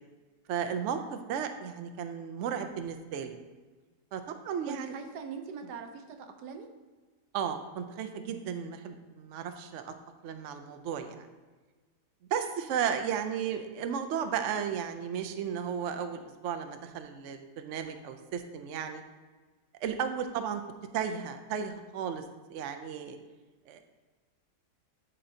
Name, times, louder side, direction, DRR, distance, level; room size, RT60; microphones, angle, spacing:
voice 1, 0.5-3.4 4.1-4.9 7.3-9.9 10.2-11.3 12.3-19.0 19.8-20.6 20.9-23.2 23.7-23.8, right 7 dB, 65° right, 7 dB, 0.7 m, -34 dB
voice 2, 4.6-6.7 12.8-13.0, right 6 dB, 80° right, 6 dB, 1.3 m, -42 dB
11.5 x 4.4 x 2.7 m, 1.3 s
omnidirectional pair, 1.7 m